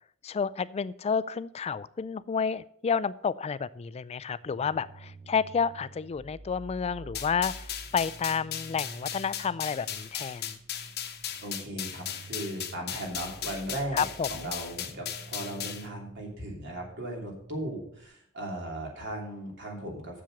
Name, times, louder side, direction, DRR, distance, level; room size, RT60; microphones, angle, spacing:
voice 1, 0.2-10.6 13.9-14.5, left 6 dB, 30° left, 17 dB, 0.3 m, -30 dB
sound 1, 4.4-18.1, right 2 dB, 35° right, 0.7 m, -49 dB
sound 2, 7.1-15.9, left 10 dB, 50° left, 0.9 m, -37 dB
voice 2, 11.4-20.2, right 1 dB, 55° right, 0 dB, 2.8 m, -37 dB
7.5 x 7.1 x 6.4 m, 0.67 s
head